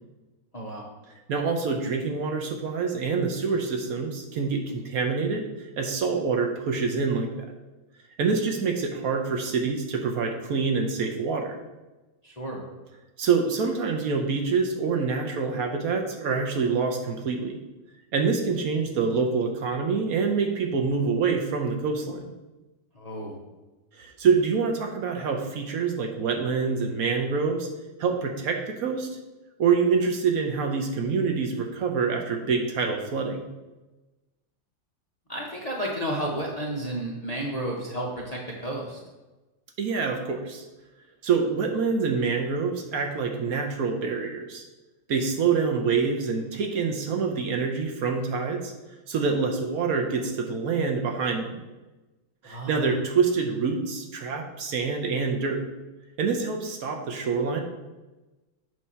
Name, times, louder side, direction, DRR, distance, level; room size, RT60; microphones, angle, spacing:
voice 1, 0.5-0.8 12.2-12.6 22.9-23.4 35.3-39.0 52.4-52.9, right 1 dB, 45° left, -3 dB, 0.5 m, -32 dB
voice 2, 1.3-7.5 8.2-11.6 13.2-17.6 18.1-22.2 23.9-27.7 28.0-29.1 29.6-33.5 39.8-40.6 41.2-44.6 45.1-48.7 49.1-51.5 52.4-55.6 56.2-57.6, right 5 dB, 65° right, 3 dB, 0.9 m, -26 dB
7.7 x 2.8 x 5.6 m, 1.1 s
omnidirectional pair, 2.1 m